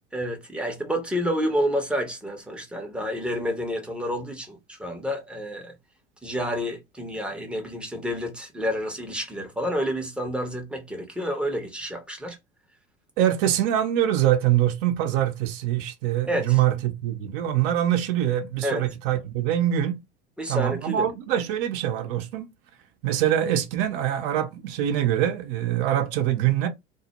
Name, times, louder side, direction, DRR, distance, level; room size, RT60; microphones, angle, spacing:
voice 1, 0.1-5.7 6.2-12.4 16.3-16.6 18.6-18.8 20.4-21.1, equal, 5° right, 0.6 m, -29 dB
voice 2, 13.2-20.0 20.5-22.5 23.0-26.7, right 11 dB, 50° right, 0.6 m, -24 dB
2.1 x 2.0 x 2.8 m
figure-of-eight pair, 75°, 35 cm